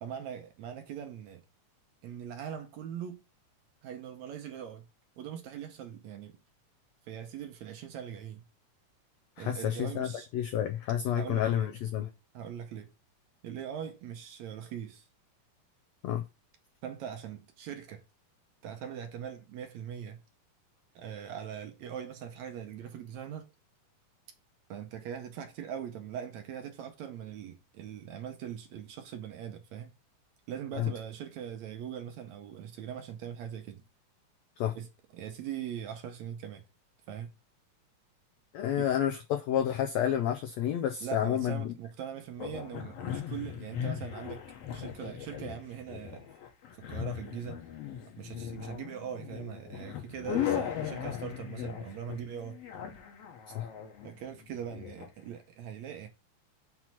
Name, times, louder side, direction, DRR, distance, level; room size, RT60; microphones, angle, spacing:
voice 1, 0.0-1.4 2.0-3.2 3.8-4.8 5.2-6.4 7.1-8.4 9.4-10.3 11.1-11.7 12.3-12.9 13.4-15.1 16.8-18.0 18.6-20.2 21.0-23.5 24.7-29.9 30.5-33.8 34.8-36.6 37.1-37.3 38.8-38.9 41.0-44.4 44.7-46.3 46.7-47.6 48.2-52.6 54.0-56.1, right 9 dB, 70° right, 1.9 m, -41 dB
voice 2, 9.4-12.1 16.0-16.2 30.8-30.9 34.6-34.7 38.5-41.7 53.5-53.7, left 10 dB, 90° left, 1.5 m, -30 dB
sound 1, 42.4-55.1, left 9 dB, 60° left, 1.8 m, -38 dB
6.0 x 3.0 x 5.6 m
omnidirectional pair, 3.7 m